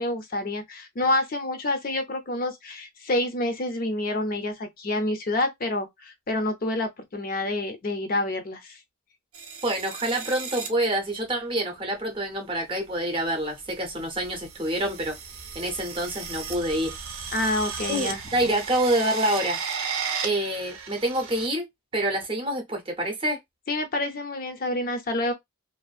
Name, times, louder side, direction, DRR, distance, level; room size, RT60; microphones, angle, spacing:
voice 1, 0.0-8.8 17.3-18.2 23.7-25.3, left 1 dB, 40° left, 0.4 m, -28 dB
sound 1, 9.3-10.7 11.9-12.2 13.2-21.5, right 6 dB, 75° right, 0.6 m, -35 dB
voice 2, 9.6-15.2 15.5-17.0 17.9-19.6 20.2-21.6 21.9-23.4, right 1 dB, 25° right, 0.6 m, -27 dB
2.5 x 2.4 x 2.3 m
head